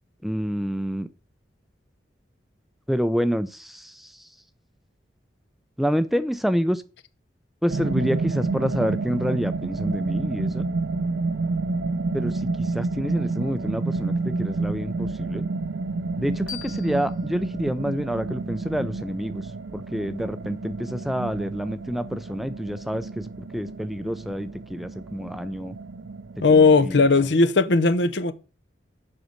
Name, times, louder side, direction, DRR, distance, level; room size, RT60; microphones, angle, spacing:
voice 1, 0.2-1.1 2.9-4.1 5.8-6.8 7.6-10.6 12.1-15.5 16.2-19.4 19.7-23.2 23.5-25.7 26.8-26.9, equal, ahead, 0.3 m, -27 dB
sound 1, 7.7-27.1, right 3 dB, 75° right, 0.5 m, -30 dB
sound 2, 16.5-19.3, left 10 dB, 45° left, 1.6 m, -44 dB
voice 2, 26.4-28.3, left 3 dB, 70° left, 0.7 m, -17 dB
7.8 x 5.4 x 6.4 m
head